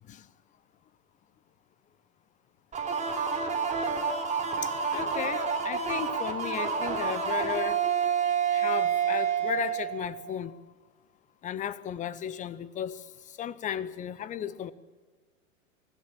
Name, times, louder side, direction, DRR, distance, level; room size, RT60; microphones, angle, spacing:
sound 1, 2.7-10.3, right 6 dB, 15° right, 3.3 m, -29 dB
voice 1, 4.6-7.8 8.5-10.5 11.4-14.7, left 9 dB, 20° left, 0.8 m, -35 dB
24.5 x 16.0 x 7.3 m
figure-of-eight pair, 95°, 41 cm